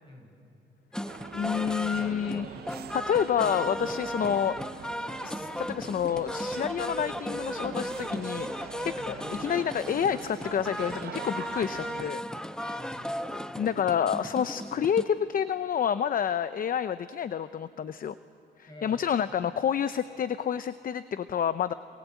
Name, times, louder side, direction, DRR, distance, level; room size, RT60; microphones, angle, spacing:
voice 1, 0.0-0.4 1.8-2.7 4.2-4.4 8.8-9.3 12.6-13.4 18.7-19.1, left 1 dB, 20° left, 2 dB, 7.1 m, -49 dB
sound 1, 0.9-15.0, equal, 5° left, 1.0 m, -36 dB
sound 2, 1.1-12.1, right 10 dB, 55° right, 0.6 m, -44 dB
voice 2, 1.3-2.5 2.9-4.5 5.2-12.2 13.6-18.1 18.6-21.7, left 8 dB, 45° left, 13 dB, 0.7 m, -29 dB
28.0 x 25.5 x 8.3 m, 2.6 s
cardioid pair, 90°, 20 cm